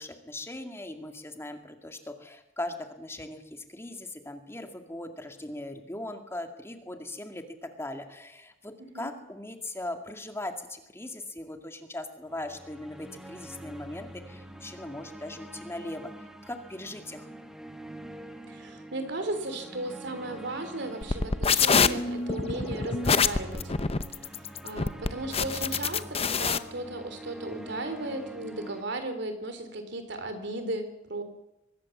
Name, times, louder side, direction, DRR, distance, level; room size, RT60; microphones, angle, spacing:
voice 1, 0.0-17.3, left 1 dB, 15° left, 5 dB, 2.1 m, -39 dB
voice 2, 8.8-9.1 18.5-23.7 24.4-31.2, right 2 dB, 65° right, 9 dB, 3.6 m, -36 dB
sound 1, 12.3-28.8, right 1 dB, 5° right, 1.9 m, -45 dB
sound 2, 21.0-26.6, left 5 dB, 30° left, 0.8 m, -25 dB
24.0 x 20.0 x 7.3 m, 0.91 s
head